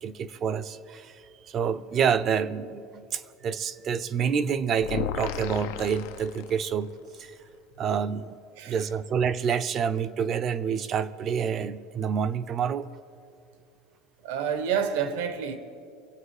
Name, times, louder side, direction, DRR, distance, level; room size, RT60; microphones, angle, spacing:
voice 1, 0.0-6.9 7.2-7.3 7.8-8.4 8.7-12.9, right 7 dB, 30° right, 0.6 m, -28 dB
sound 1, 4.8-6.9, left 11 dB, 75° left, 0.7 m, -34 dB
voice 2, 8.6-8.9 14.2-15.6, right 7 dB, 80° right, 1.2 m, -28 dB
25.0 x 8.6 x 4.9 m
cardioid pair, 155°, 0 cm